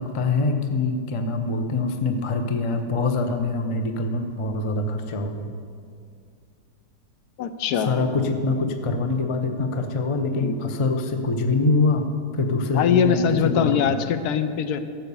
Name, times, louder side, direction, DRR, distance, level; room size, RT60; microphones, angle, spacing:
voice 1, 0.0-5.5 7.9-12.1 12.3-14.0, left 3 dB, 45° left, 6 dB, 0.4 m, -24 dB
voice 2, 7.4-7.9 10.3-10.6 12.7-14.8, left 7 dB, 75° left, 10 dB, 1.1 m, -22 dB
13.5 x 5.7 x 6.9 m, 2.2 s
omnidirectional pair, 1.8 m